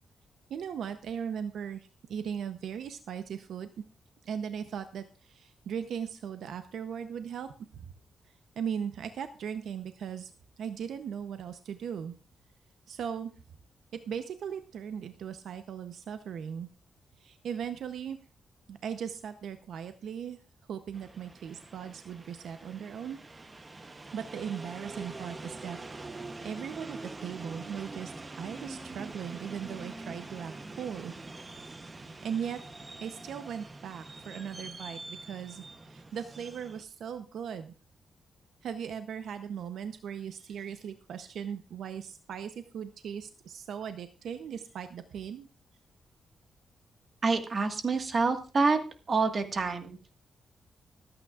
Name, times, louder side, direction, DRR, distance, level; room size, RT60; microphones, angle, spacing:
voice 1, 0.5-3.7 4.2-7.9 8.6-10.3 10.6-12.1 12.9-13.3 14.1-16.7 17.2-18.2 18.7-20.4 20.7-23.2 24.1-25.8 26.1-31.1 32.0-32.6 33.0-37.7 38.6-45.5, right 8 dB, 80° right, 9 dB, 0.7 m, -38 dB
sound 1, 20.9-36.8, right 2 dB, 25° right, 0.8 m, -45 dB
voice 2, 47.2-48.8 49.1-50.0, right 4 dB, 40° right, 6 dB, 1.5 m, -27 dB
25.0 x 8.8 x 2.4 m, 0.33 s
cardioid pair, 125°, 0 cm